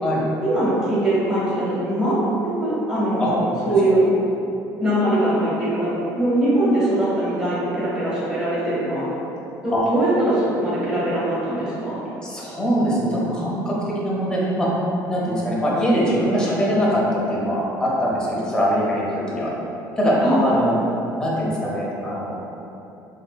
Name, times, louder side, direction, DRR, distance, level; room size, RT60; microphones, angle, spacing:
voice 1, 0.4-2.2 2.6-3.4 3.6-4.1 4.8-9.1 9.6-12.0 20.2-20.6, right 1 dB, 10° right, -10 dB, 1.1 m, -21 dB
voice 2, 3.2-3.8 9.7-9.9 12.2-14.7 15.1-19.5 20.0-20.7 21.2-22.4, equal, 10° left, -6 dB, 0.7 m, -22 dB
3.5 x 2.6 x 2.2 m, 2.9 s
cardioid pair, 130°, 8 cm